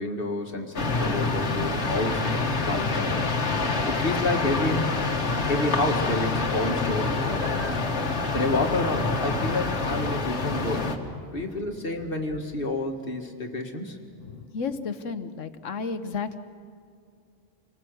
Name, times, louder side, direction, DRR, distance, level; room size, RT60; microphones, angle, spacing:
voice 1, 0.0-3.3 3.9-4.9 5.5-7.7 8.3-10.9 11.3-14.0, left 2 dB, 50° left, 3 dB, 2.2 m, -29 dB
sound 1, 0.7-11.0, left 3 dB, 65° left, 1.9 m, -26 dB
voice 2, 14.2-16.4, left 5 dB, 85° left, 10 dB, 1.4 m, -33 dB
28.0 x 19.5 x 7.9 m, 2.3 s
omnidirectional pair, 1.2 m